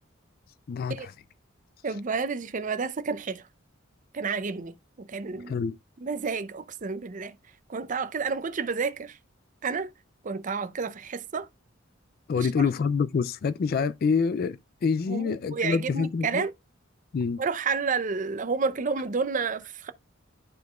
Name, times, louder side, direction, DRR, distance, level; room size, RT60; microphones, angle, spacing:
voice 1, 1.8-3.4 4.1-5.6 6.0-7.3 7.7-9.2 9.6-9.9 10.2-11.5 12.4-12.5 15.1-16.5 17.4-19.9, right 5 dB, 40° right, 0.5 m, -30 dB
voice 2, 12.3-16.4 17.1-17.4, left 5 dB, 50° left, 0.3 m, -26 dB
11.5 x 4.7 x 2.3 m
head